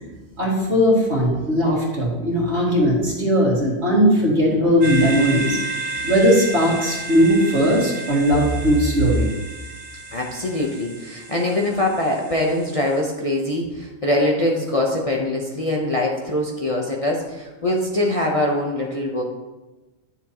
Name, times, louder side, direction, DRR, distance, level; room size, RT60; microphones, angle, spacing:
voice 1, 0.4-5.6 6.0-9.3, equal, 55° right, -4 dB, 2.4 m, -18 dB
sound 1, 4.8-13.0, right 3 dB, 40° right, 1.8 m, -32 dB
voice 2, 10.1-19.2, left 1 dB, 30° left, -2 dB, 0.8 m, -23 dB
10.5 x 7.0 x 2.9 m, 1.1 s
omnidirectional pair, 1.3 m